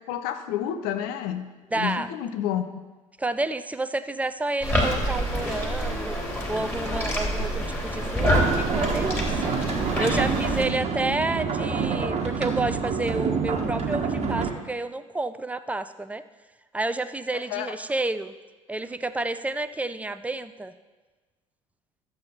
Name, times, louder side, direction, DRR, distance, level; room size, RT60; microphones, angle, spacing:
voice 1, 0.1-2.6 17.3-17.7, left 10 dB, 60° left, 9 dB, 0.8 m, -30 dB
voice 2, 1.7-2.1 3.2-6.2 6.5-16.2 16.7-18.3 18.7-20.7, right 2 dB, 10° right, 12 dB, 0.5 m, -30 dB
sound 1, 4.6-10.7, equal, 15° left, 2.7 m, -27 dB
sound 2, 8.2-14.5, right 5 dB, 40° right, 1.4 m, -27 dB
12.5 x 7.8 x 4.3 m, 1.3 s
figure-of-eight pair, 60°, 17 cm